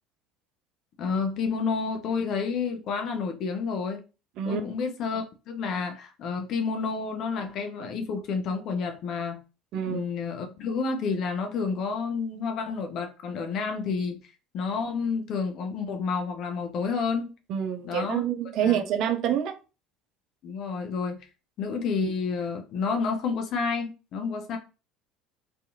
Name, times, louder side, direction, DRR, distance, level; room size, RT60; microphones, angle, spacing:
voice 1, 1.0-4.0 4.4-9.4 9.9-17.3 17.8-18.2 18.6-18.8 20.4-21.2 21.6-24.6, left 5 dB, 50° left, 0.5 m, -30 dB
voice 2, 9.7-10.1 17.5-19.6, right 9 dB, 55° right, 0.4 m, -27 dB
2.6 x 2.3 x 2.5 m
figure-of-eight pair, 65°, 0 cm